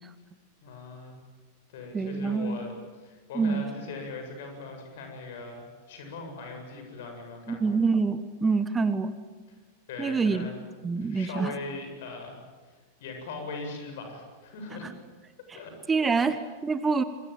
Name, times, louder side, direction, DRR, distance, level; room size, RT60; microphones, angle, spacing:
voice 1, 0.6-1.1 1.7-2.7 3.0-7.7 9.9-10.6 11.0-12.4 12.6-14.9 15.5-15.7 16.2-16.4, left 3 dB, 55° left, 5 dB, 7.9 m, -40 dB
voice 2, 1.9-2.6 3.3-3.6 7.5-9.1 10.0-10.5 10.8-11.5 15.9-17.0, right 4 dB, 15° right, 12 dB, 1.3 m, -26 dB
26.5 x 22.5 x 9.0 m, 1.4 s
figure-of-eight pair, 90°, 0 cm